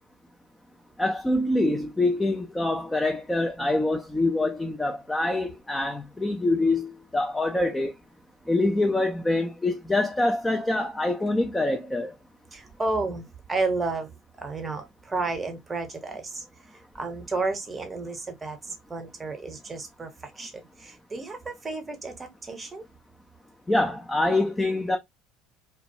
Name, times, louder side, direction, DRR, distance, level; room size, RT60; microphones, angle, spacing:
voice 1, 1.0-7.9 8.5-12.1 23.7-25.0, left 2 dB, 10° left, 0.5 m, -25 dB
voice 2, 12.5-14.1 14.4-16.4 17.0-20.1 20.4-20.5 20.8-22.8, right 3 dB, 20° right, 0.9 m, -32 dB
2.2 x 2.2 x 2.7 m
hypercardioid pair, 70°, 0 cm